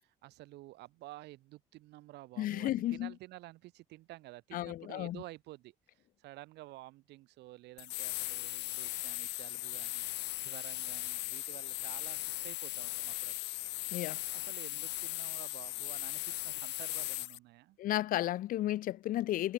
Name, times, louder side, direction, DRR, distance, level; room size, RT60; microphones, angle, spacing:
voice 1, 0.0-10.0 10.4-13.5 14.3-17.8, right 18 dB, 85° right, 3.7 m, -51 dB
voice 2, 2.4-3.1 4.5-5.2 13.9-14.2 17.8-19.5, left 14 dB, 55° left, 0.4 m, -33 dB
sound 1, 7.8-17.4, left 20 dB, 85° left, 1.3 m, -38 dB
cardioid pair, 110°, 17 cm